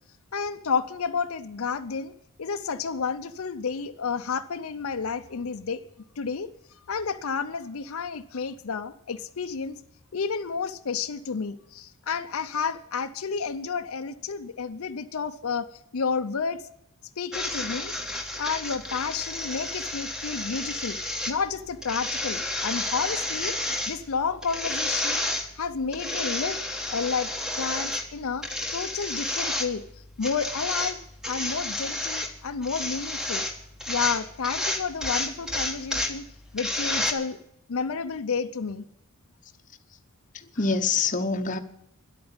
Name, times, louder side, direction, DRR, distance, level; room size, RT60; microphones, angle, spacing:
voice 1, 0.3-2.1 2.4-5.8 6.2-6.5 6.9-9.8 10.1-16.6 17.2-17.9 18.4-21.0 21.3-23.6 23.9-25.2 25.6-26.6 26.9-27.3 27.6-29.8 30.2-31.0 31.3-33.5 33.9-36.3 36.5-37.4 37.7-38.8, left 5 dB, 70° left, 9 dB, 0.6 m, -30 dB
sound 1, 17.3-37.1, left 1 dB, 5° right, 1.2 m, -31 dB
voice 2, 40.3-41.6, left 4 dB, 35° left, 6 dB, 0.8 m, -26 dB
11.0 x 8.7 x 8.8 m, 0.76 s
head